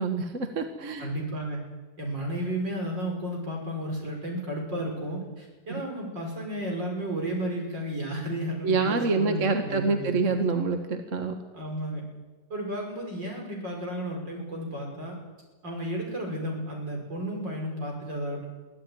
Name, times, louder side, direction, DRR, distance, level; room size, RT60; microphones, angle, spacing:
voice 1, 0.0-1.1 5.7-5.8 8.6-11.4, right 4 dB, 45° right, 5 dB, 1.8 m, -26 dB
voice 2, 1.0-1.6 2.0-10.2 11.5-12.0 12.5-15.1 15.6-18.5, right 1 dB, 75° right, 0 dB, 6.4 m, -33 dB
23.5 x 15.5 x 9.4 m, 1.2 s
omnidirectional pair, 2.0 m